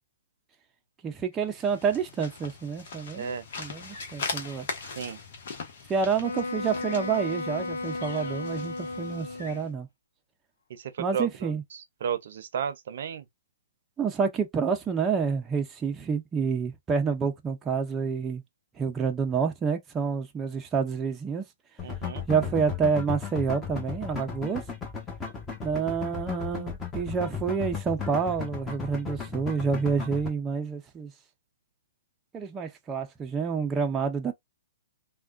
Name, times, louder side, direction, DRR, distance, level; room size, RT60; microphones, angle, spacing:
voice 1, 1.0-3.3 3.6-4.7 5.9-9.9 11.0-11.6 14.0-18.4 18.8-21.4 22.3-24.6 25.6-31.1 32.3-34.3, right 6 dB, 15° right, 0.6 m, -28 dB
sound 1, 1.4-9.7, left 4 dB, 60° left, 1.0 m, -40 dB
voice 2, 3.1-3.4 5.0-5.2 10.7-13.3 21.8-22.3, right 7 dB, 60° right, 0.6 m, -33 dB
Wind instrument woodwind instrument, 6.2-9.8, left 2 dB, 90° left, 0.7 m, -34 dB
sound 2, 21.8-30.3, left 6 dB, 15° left, 1.1 m, -35 dB
3.4 x 2.2 x 2.5 m
hypercardioid pair, 140°, 0 cm